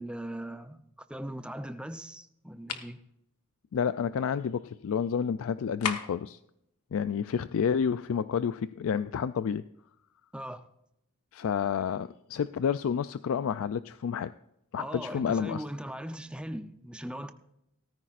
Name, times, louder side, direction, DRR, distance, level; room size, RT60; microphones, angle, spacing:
voice 1, 0.0-3.0 10.3-10.7 14.8-17.3, right 1 dB, 5° right, 0.6 m, -39 dB
sound 1, 2.6-3.0 5.8-6.3, left 6 dB, 90° left, 1.2 m, -33 dB
voice 2, 3.7-6.4 6.9-9.6 11.3-14.3 14.7-15.6, left 7 dB, 65° left, 0.3 m, -30 dB
18.0 x 14.0 x 2.5 m
head